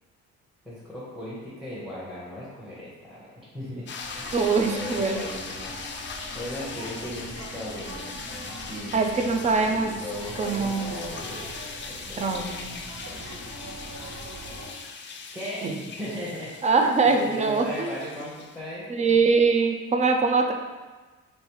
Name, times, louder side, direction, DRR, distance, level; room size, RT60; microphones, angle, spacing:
voice 1, 0.6-3.9 4.1-4.3 4.7-5.7 6.3-8.1 8.7-12.6 13.0-13.4 15.3-16.7 17.0-19.2, equal, ahead, -9 dB, 1.0 m, -37 dB
sound 1, 3.9-18.6, left 4 dB, 40° left, 0.4 m, -40 dB
sound 2, 4.0-14.7, right 1 dB, 65° right, 1.1 m, -41 dB
voice 2, 4.3-5.2 8.9-9.9 10.4-10.9 12.2-12.8 15.6-15.8 16.6-17.9 18.9-20.5, right 4 dB, 25° right, 4 dB, 0.4 m, -23 dB
3.2 x 3.1 x 3.0 m, 1.3 s
cardioid pair, 90°, 30 cm